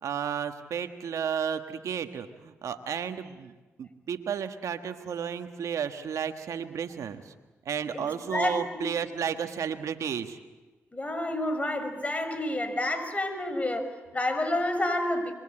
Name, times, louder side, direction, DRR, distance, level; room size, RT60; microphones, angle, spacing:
voice 1, 0.0-7.3 7.6-10.4, right 7 dB, 75° right, 7 dB, 1.5 m, -33 dB
voice 2, 7.9-8.9 10.9-15.3, left 1 dB, 25° left, 9 dB, 5.2 m, -29 dB
26.5 x 22.0 x 8.8 m, 1.2 s
supercardioid pair, 55°, 5 cm